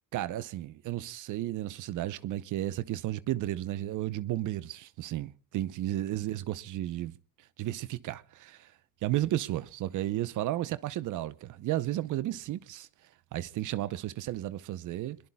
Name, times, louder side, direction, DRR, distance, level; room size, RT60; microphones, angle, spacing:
voice 1, 0.1-7.2 7.6-8.7 9.0-12.9 13.3-15.2, right 14 dB, 80° right, 0.8 m, -33 dB
27.5 x 22.0 x 2.3 m
cardioid pair, 90°, 30 cm